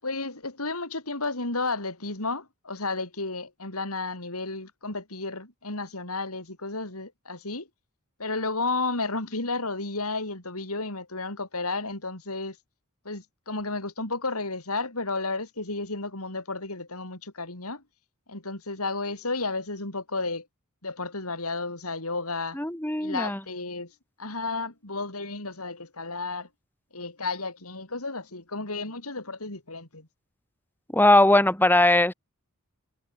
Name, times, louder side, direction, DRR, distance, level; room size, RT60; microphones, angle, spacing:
voice 1, 0.0-7.7 8.2-12.6 13.1-17.8 18.3-20.5 20.8-22.6 23.0-23.9 24.2-26.5 26.9-30.1, left 3 dB, 85° left, 5.6 m, -32 dB
voice 2, 22.5-23.4 30.9-32.1, left 1 dB, 10° left, 3.0 m, -19 dB
head